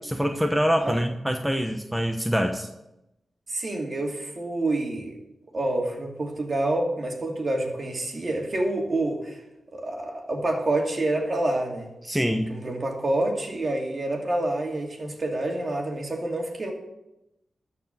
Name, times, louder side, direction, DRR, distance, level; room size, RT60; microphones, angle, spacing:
voice 1, 0.1-2.7 12.0-12.5, equal, 5° right, 5 dB, 0.9 m, -25 dB
voice 2, 3.5-5.2 5.5-9.4 9.7-11.9 12.5-16.7, right 2 dB, 45° right, 1 dB, 2.6 m, -27 dB
13.0 x 4.8 x 7.9 m, 0.91 s
cardioid pair, 55°, 0 cm